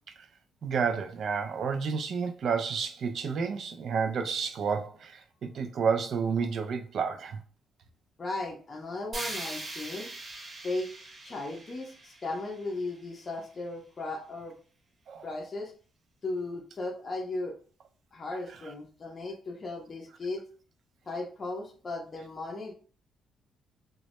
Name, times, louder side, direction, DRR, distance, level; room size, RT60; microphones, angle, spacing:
voice 1, 0.6-7.4 15.1-15.2, right 6 dB, 60° right, 0.4 m, -30 dB
voice 2, 8.2-10.1 10.6-10.9 11.2-14.5 15.2-15.7 16.2-17.6 18.1-20.4 21.1-22.7, left 2 dB, 35° left, 0.5 m, -36 dB
sound 1, 9.1-13.2, right 2 dB, 45° right, 0.8 m, -41 dB
2.1 x 2.0 x 2.8 m
cardioid pair, 90°, 0 cm